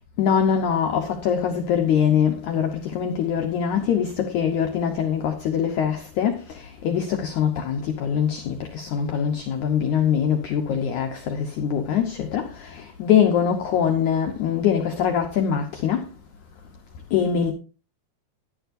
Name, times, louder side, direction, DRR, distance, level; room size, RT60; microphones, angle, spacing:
voice 1, 0.2-6.3 6.8-11.2 11.6-12.4 13.0-16.0 17.1-17.5, left 8 dB, 70° left, 2.0 m, -23 dB
11.5 x 11.0 x 2.6 m
omnidirectional pair, 4.4 m